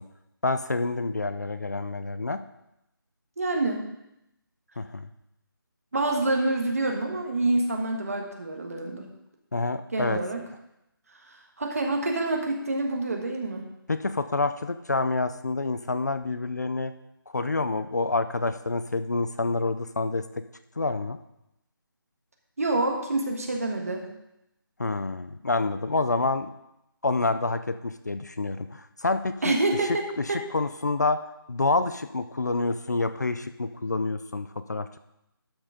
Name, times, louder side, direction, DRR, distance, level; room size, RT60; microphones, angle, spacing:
voice 1, 0.4-2.4 4.8-5.0 9.5-10.2 13.9-16.9 17.3-20.2 20.8-21.2 24.8-26.5 27.0-29.6 30.2-30.3 30.5-31.2 31.5-35.0, left 3 dB, 45° left, 10 dB, 0.5 m, -27 dB
voice 2, 3.4-3.8 5.9-9.1 9.9-10.4 11.6-13.6 22.6-24.1 29.4-30.4, right 2 dB, 40° right, 2 dB, 1.6 m, -27 dB
12.0 x 6.1 x 4.9 m, 0.85 s
figure-of-eight pair, 180°, 12 cm